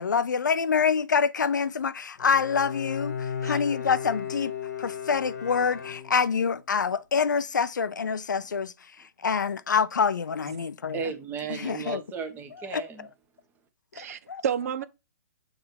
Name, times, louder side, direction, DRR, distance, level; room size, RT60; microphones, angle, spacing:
voice 1, 0.0-4.5 4.8-8.7 9.2-11.0 11.5-12.0 12.7-12.8 14.3-14.4, left 6 dB, 80° left, 0.5 m, -26 dB
Bowed string instrument, 2.2-6.6, left 7 dB, 65° left, 1.0 m, -35 dB
voice 2, 10.9-13.1, right 6 dB, 20° right, 1.0 m, -35 dB
voice 3, 13.9-14.9, right 8 dB, 55° right, 0.6 m, -31 dB
6.5 x 3.3 x 4.5 m
hypercardioid pair, 130°, 10 cm